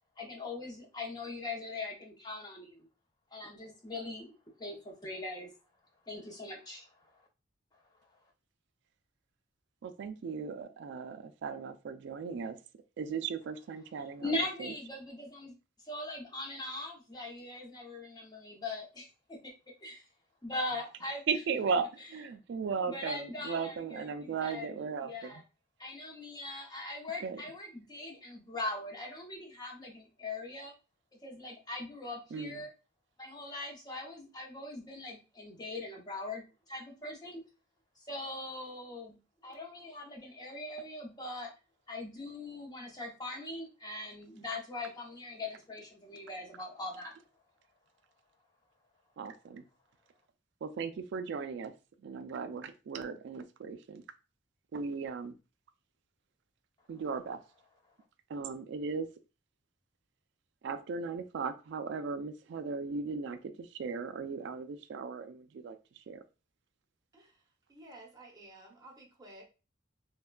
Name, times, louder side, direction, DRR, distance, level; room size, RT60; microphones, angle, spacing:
voice 1, 0.2-2.8 3.3-4.3 4.6-5.5 6.1-7.3 7.7-7.8 14.2-19.4 19.8-20.0 20.4-21.2 22.8-24.7 25.0-25.4 25.8-30.7 31.2-32.7 33.2-37.4 38.0-39.2 39.4-41.5 41.9-47.1, left 2 dB, 20° left, 0 dB, 0.6 m, -41 dB
voice 2, 9.8-12.6 13.0-14.7 21.3-25.3 27.2-27.4 32.3-32.6 49.2-49.6 50.6-51.7 52.0-54.0 54.7-55.4 56.9-57.4 58.3-59.1 60.6-66.2, right 5 dB, 60° right, 10 dB, 0.3 m, -37 dB
voice 3, 67.7-69.4, right 1 dB, 20° right, -1 dB, 0.7 m, -53 dB
3.3 x 2.1 x 2.2 m, 0.31 s
head